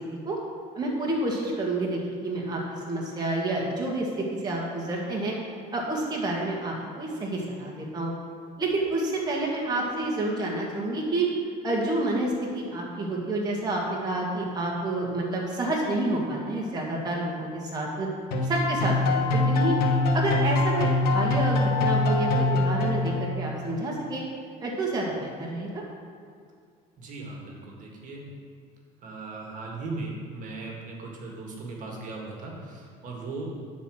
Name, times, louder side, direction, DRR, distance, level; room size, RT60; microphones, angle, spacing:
voice 1, 0.7-2.6 2.9-4.1 4.4-5.3 5.7-8.1 8.6-11.3 11.6-18.1 18.4-19.8 20.1-24.2 24.6-25.8, right 2 dB, 25° right, -3 dB, 1.5 m, -29 dB
sound 1, 18.3-23.5, left 2 dB, 75° left, 1.2 m, -24 dB
voice 2, 27.0-28.2 29.0-33.5, right 3 dB, 55° right, -1 dB, 1.7 m, -38 dB
9.6 x 4.3 x 6.2 m, 2.2 s
cardioid pair, 125°, 16 cm